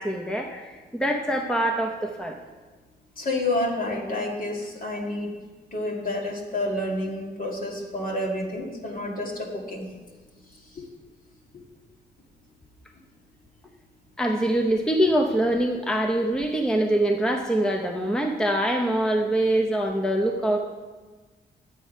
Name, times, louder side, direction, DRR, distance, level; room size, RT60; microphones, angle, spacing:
voice 1, 0.0-2.4 7.0-7.1 14.2-20.6, right 1 dB, 5° left, 3 dB, 0.7 m, -24 dB
voice 2, 3.2-5.4 5.7-9.9 10.7-10.8, left 1 dB, 50° left, 0 dB, 2.0 m, -29 dB
9.8 x 8.3 x 5.4 m, 1.3 s
wide cardioid pair, 130°, 19 cm